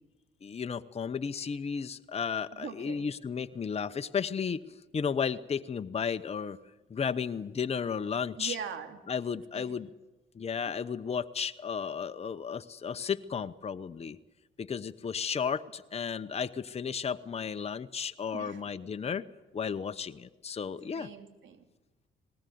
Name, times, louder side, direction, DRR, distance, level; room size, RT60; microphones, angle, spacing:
voice 1, 0.4-4.6 4.9-6.6 6.9-8.6 9.1-9.9 10.3-14.2 14.6-19.2 19.5-21.1, left 6 dB, 30° left, 9 dB, 0.9 m, -33 dB
voice 2, 2.5-3.1 8.4-9.1 9.5-9.8 18.3-18.6 20.9-21.6, right 7 dB, 75° right, 6 dB, 3.0 m, -41 dB
20.0 x 18.0 x 9.3 m, 1.1 s
cardioid pair, 90°, 20 cm